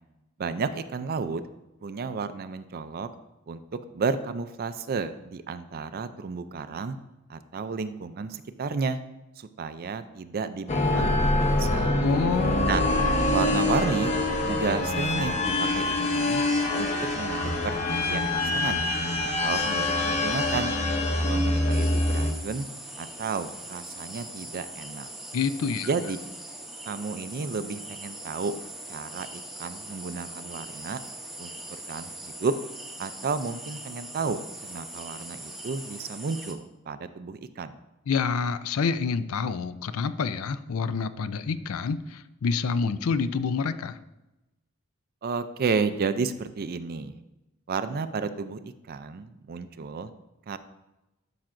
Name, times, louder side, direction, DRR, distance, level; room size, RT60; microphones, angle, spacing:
voice 1, 0.4-1.4 1.8-3.1 3.5-3.6 3.9-7.0 7.3-9.0 9.4-12.0 12.7-12.8 13.3-14.1 14.5-16.4 16.8-18.8 19.2-20.8 21.1-22.7 23.0-25.1 25.8-26.2 26.8-28.5 28.9-31.0 31.4-31.5 31.9-32.5 33.0-37.7 45.2-47.2 47.7-50.1 50.5-50.6, right 5 dB, 45° right, 12 dB, 0.4 m, -32 dB
sound 1, 10.7-22.3, left 2 dB, 30° left, 0.9 m, -25 dB
voice 2, 12.0-12.7 25.3-25.9 38.1-44.0, left 5 dB, 70° left, 13 dB, 0.4 m, -27 dB
sound 2, 21.7-36.5, right 1 dB, ahead, 0.7 m, -41 dB
11.5 x 5.9 x 2.6 m, 0.97 s
head